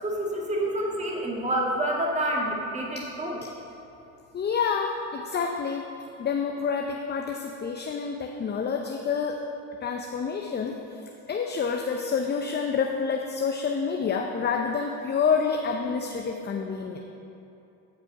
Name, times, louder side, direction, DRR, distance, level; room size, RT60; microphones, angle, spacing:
voice 1, 0.0-3.4, right 1 dB, 15° right, -2 dB, 1.7 m, -28 dB
voice 2, 4.3-5.9 6.2-9.4 9.8-10.7 11.3-17.0, left 6 dB, 25° left, 2 dB, 0.7 m, -28 dB
14.0 x 4.9 x 4.8 m, 2.7 s
hypercardioid pair, 75°, 41 cm